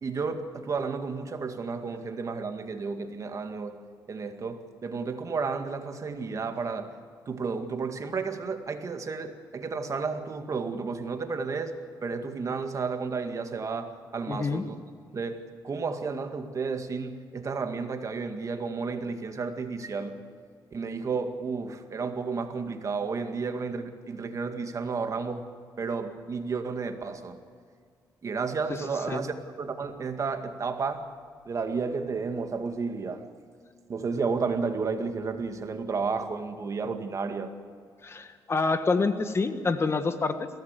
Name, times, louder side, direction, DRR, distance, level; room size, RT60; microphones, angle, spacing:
voice 1, 0.0-3.8 4.1-6.9 7.3-14.8 15.1-20.2 20.7-25.5 25.8-27.4 28.2-31.1 31.5-33.2 33.9-37.5, right 4 dB, 45° right, 7 dB, 2.1 m, -32 dB
voice 2, 14.3-14.6 29.1-29.2 38.0-40.5, left 4 dB, 35° left, 9 dB, 1.6 m, -27 dB
22.0 x 17.0 x 8.2 m, 2.1 s
cardioid pair, 105°, 8 cm